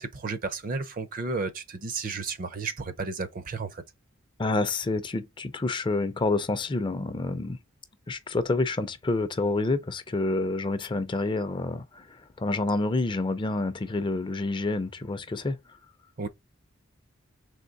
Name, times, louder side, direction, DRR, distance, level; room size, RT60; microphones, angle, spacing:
voice 1, 0.0-3.8 16.2-16.3, right 4 dB, 40° right, 0.5 m, -33 dB
voice 2, 4.4-7.6 8.1-15.8, left 2 dB, 20° left, 0.4 m, -28 dB
3.6 x 3.2 x 3.9 m
head